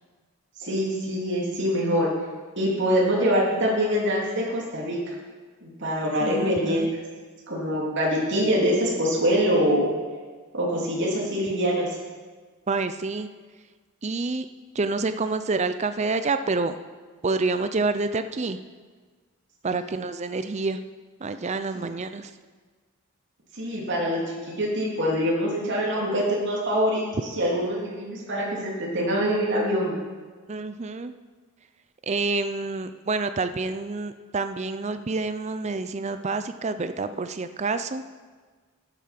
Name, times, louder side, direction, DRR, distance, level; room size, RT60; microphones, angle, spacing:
voice 1, 0.6-2.1 2.6-5.2 5.6-6.9 7.5-9.9 10.5-11.9 19.6-19.8 21.7-21.9 23.5-29.9, equal, 55° right, -4 dB, 2.9 m, -24 dB
voice 2, 6.2-6.9 12.7-13.3 14.0-14.5 14.7-16.8 17.2-18.6 19.6-20.8 21.2-22.3 30.5-31.1 32.0-38.0, right 3 dB, 30° right, 10 dB, 0.5 m, -28 dB
13.5 x 8.4 x 5.9 m, 1.4 s
head